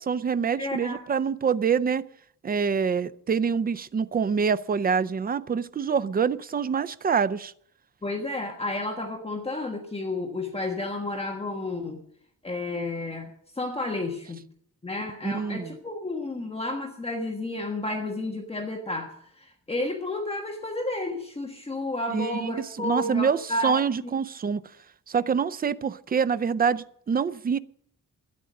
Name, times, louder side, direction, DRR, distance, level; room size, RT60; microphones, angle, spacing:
voice 1, 0.0-2.1 2.4-7.5 15.2-15.7 22.1-24.6 25.1-27.6, right 6 dB, 30° right, 15 dB, 0.5 m, -26 dB
voice 2, 0.6-1.0 8.0-12.0 12.4-14.4 14.8-23.7 24.0-24.1, left 2 dB, 20° left, 2 dB, 1.4 m, -31 dB
13.0 x 10.0 x 6.5 m, 0.65 s
wide cardioid pair, 155°, 33 cm